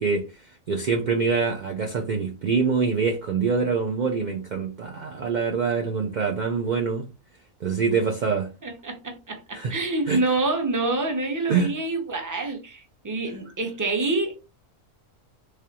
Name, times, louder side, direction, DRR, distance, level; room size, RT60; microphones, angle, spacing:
voice 1, 0.0-7.1 7.6-8.5 9.5-9.8 10.1-10.2 11.5-11.7, right 5 dB, 60° right, 0.4 m, -25 dB
voice 2, 8.6-14.3, right 2 dB, 20° right, 0.6 m, -27 dB
3.6 x 3.2 x 2.8 m
omnidirectional pair, 1.4 m